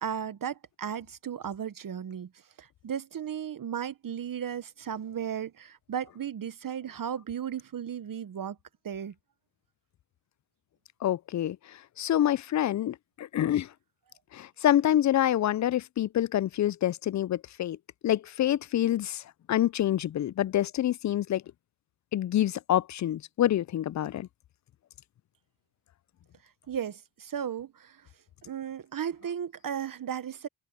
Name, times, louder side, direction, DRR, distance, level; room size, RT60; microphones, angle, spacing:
voice 1, 0.0-2.3 2.6-8.6 8.8-9.1 26.7-28.0 28.4-30.5, right 8 dB, 45° right, 1.0 m, -35 dB
voice 2, 11.0-11.6 12.0-13.7 14.3-17.8 18.0-19.2 19.5-21.4 22.1-24.3, left 12 dB, 40° left, 0.4 m, -26 dB
cardioid pair, 65°, 45 cm